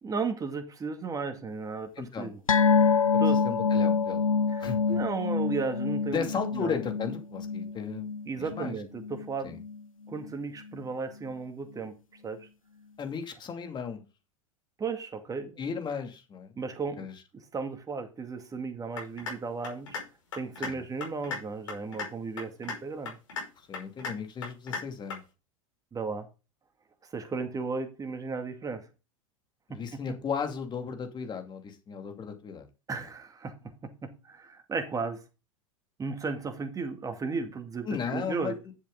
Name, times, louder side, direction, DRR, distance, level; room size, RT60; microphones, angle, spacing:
voice 1, 0.0-2.4 2.8-2.9 3.2-3.4 4.5-6.3 6.5-6.8 8.3-9.6 10.1-11.9 12.2-12.5 14.8-15.6 16.6-17.1 17.5-19.9 20.3-23.2 25.9-26.3 27.1-28.8 29.7-30.0 32.9-33.5 33.8-35.2 36.0-38.6, right 4 dB, 20° right, 8 dB, 2.2 m, -35 dB
voice 2, 2.0-2.3 3.3-4.2 4.6-5.0 6.1-8.1 8.4-8.7 9.4-9.6 13.0-14.0 15.6-16.5 17.0-17.1 20.6-20.8 23.6-25.2 29.7-32.7 37.8-38.6, left 6 dB, 25° left, 6 dB, 2.5 m, -35 dB
sound 1, 2.5-9.3 9.6-9.8 10.2-10.3, left 5 dB, 85° left, 0.6 m, -26 dB
sound 2, 19.0-19.3 19.6-20.0 20.3-20.7 21.0-21.4 21.7-22.1 22.4-22.8 23.0-23.4 23.7-24.1 24.4-24.8 25.1-25.2, left 5 dB, 65° left, 5.4 m, -35 dB
11.0 x 7.3 x 3.9 m, 0.30 s
figure-of-eight pair, 85°, 17 cm